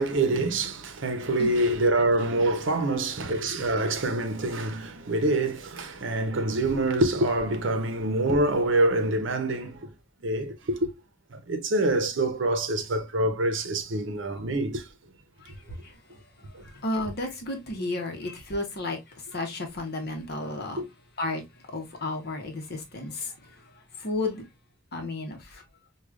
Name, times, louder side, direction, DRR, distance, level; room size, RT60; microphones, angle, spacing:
voice 1, 0.0-9.9 10.2-10.9 11.3-14.8 20.8-20.9, right 2 dB, 70° right, 0.7 m, -26 dB
voice 2, 15.8-20.8 21.2-23.6 24.0-24.4 24.9-25.6, left 2 dB, 55° left, 0.9 m, -33 dB
4.8 x 2.3 x 2.3 m
head